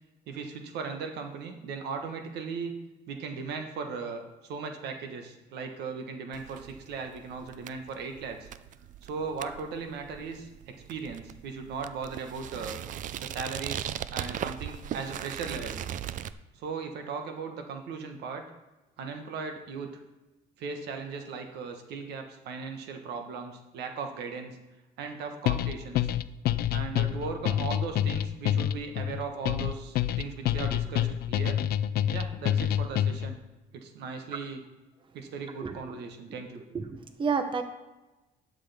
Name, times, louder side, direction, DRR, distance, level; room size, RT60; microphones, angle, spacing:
voice 1, 0.3-2.7 3.1-8.5 9.0-10.5 10.7-12.8 13.2-15.7 16.6-18.4 19.0-19.9 20.6-24.6 25.0-26.0 26.7-31.6 32.1-33.4 33.7-34.6 35.1-36.6, right 5 dB, 80° right, 5 dB, 1.3 m, -37 dB
sound 1, 6.3-16.3, right 10 dB, 50° right, 0.4 m, -39 dB
sound 2, 25.5-33.4, left 11 dB, 70° left, 0.4 m, -27 dB
voice 2, 35.6-36.0 36.7-37.6, right 5 dB, 30° right, 8 dB, 0.8 m, -30 dB
12.0 x 6.6 x 3.5 m, 1.1 s
cardioid pair, 110°, 17 cm